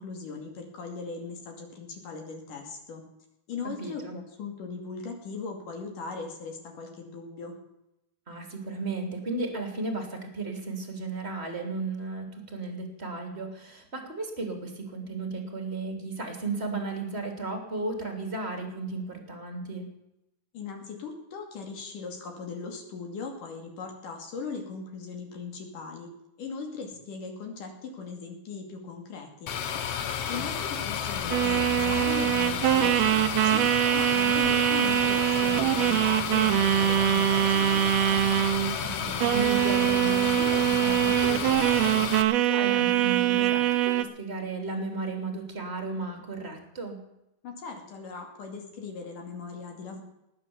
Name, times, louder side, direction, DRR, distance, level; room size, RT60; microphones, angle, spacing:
voice 1, 0.0-3.0 3.5-7.5 20.5-26.1 26.4-29.5 30.3-33.6 33.9-37.9 47.4-50.0, left 4 dB, 55° left, 2 dB, 3.9 m, -39 dB
voice 2, 3.6-4.2 8.3-19.9 30.3-30.4 38.8-47.0, right 3 dB, 20° right, 4 dB, 2.3 m, -34 dB
sound 1, 29.5-42.2, left 8 dB, 80° left, 1.3 m, -32 dB
sound 2, 31.3-38.8 39.2-44.0, right 13 dB, 80° right, 2.7 m, -23 dB
19.5 x 9.0 x 7.0 m, 0.88 s
omnidirectional pair, 4.6 m